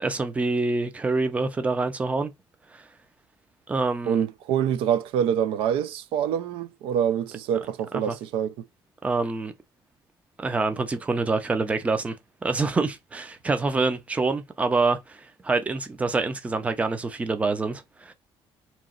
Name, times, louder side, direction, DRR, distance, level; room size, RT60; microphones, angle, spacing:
voice 1, 0.0-2.3 2.7-2.8 3.7-4.2 8.1-8.2 9.0-9.5 10.4-12.2 12.4-18.1, right 3 dB, 15° right, 0.5 m, -26 dB
voice 2, 4.1-8.6, right 9 dB, 85° right, 0.4 m, -26 dB
3.0 x 2.7 x 3.8 m
cardioid pair, 150°, 9 cm